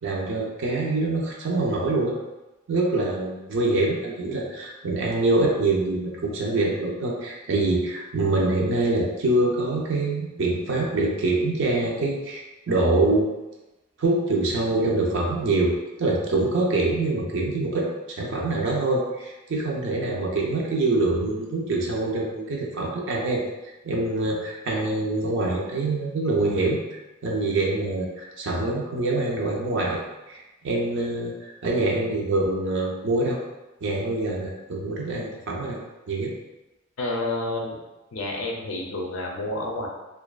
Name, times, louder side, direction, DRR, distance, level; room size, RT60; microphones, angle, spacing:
voice 1, 0.0-2.1 2.7-13.3 14.0-23.4 23.8-26.8 27.2-30.0 30.3-33.4 33.8-35.8 36.1-36.3, right 2 dB, 65° right, -2 dB, 0.5 m, -25 dB
voice 2, 37.0-37.8 38.1-39.9, left 2 dB, 85° left, 0 dB, 0.5 m, -29 dB
2.5 x 2.2 x 2.3 m, 1.0 s
head